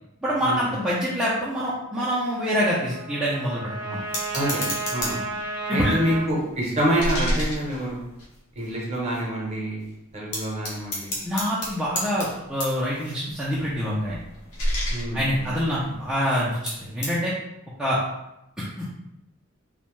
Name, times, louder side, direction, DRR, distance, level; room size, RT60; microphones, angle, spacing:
voice 1, 0.2-4.0 5.7-5.9 11.2-14.2 15.1-17.3 17.8-18.0 18.6-18.9, equal, 5° right, -9 dB, 0.3 m, -26 dB
Trumpet, 1.9-6.3, right 2 dB, 70° right, 0.5 m, -33 dB
sound 1, 4.1-5.4 5.8-8.7 9.1-9.2 9.5-9.8 10.3-16.3 16.7-17.2, equal, 90° left, 0.8 m, -32 dB
voice 2, 4.9-5.2 5.7-8.1 8.6-9.8 10.1-11.2 14.9-15.5, right 1 dB, 30° right, -3 dB, 0.7 m, -26 dB
2.6 x 2.1 x 3.0 m, 0.87 s
head